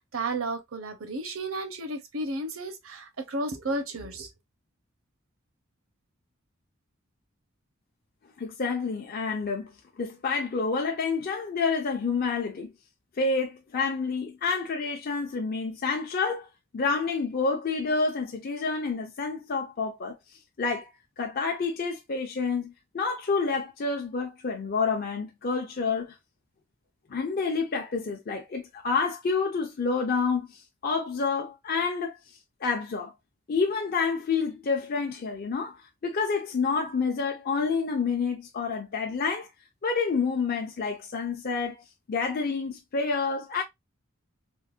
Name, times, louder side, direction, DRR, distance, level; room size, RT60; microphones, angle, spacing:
voice 1, 0.0-4.3, right 2 dB, 85° right, 0.8 m, -33 dB
voice 2, 8.4-9.7 10.0-12.7 13.2-16.5 16.7-20.2 20.6-20.9 21.2-26.1 27.1-32.2 32.6-33.1 33.5-35.8 36.0-39.5 39.8-41.8 42.1-43.6, left 4 dB, 45° left, 0.5 m, -28 dB
3.8 x 2.2 x 2.4 m
head